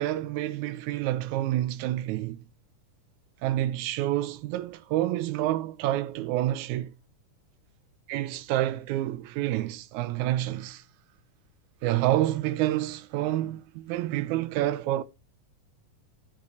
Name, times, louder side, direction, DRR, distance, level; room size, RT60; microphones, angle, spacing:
voice 1, 0.0-2.4 3.4-6.9 8.1-10.8 11.8-15.0, right 14 dB, 80° right, 1.7 m, -28 dB
10.5 x 4.9 x 3.9 m
omnidirectional pair, 3.8 m